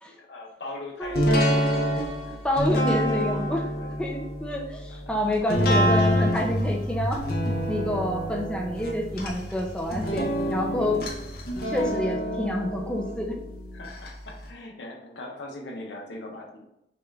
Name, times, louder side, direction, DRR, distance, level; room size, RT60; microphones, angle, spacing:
voice 1, 0.1-1.6 3.8-3.9 4.9-5.7 10.8-11.2 13.7-16.7, left 2 dB, 85° left, 1 dB, 0.9 m, -41 dB
voice 2, 1.0-1.4 2.4-3.7 4.0-7.2 7.7-11.1 11.7-13.4, left 1 dB, 5° left, -1 dB, 0.5 m, -28 dB
sound 1, 1.1-14.1 14.5-14.6, equal, 60° left, 0.9 m, -28 dB
sound 2, 5.5-10.5 10.8-11.9, left 1 dB, 70° right, 1.2 m, -30 dB
5.8 x 2.5 x 3.3 m, 0.84 s
head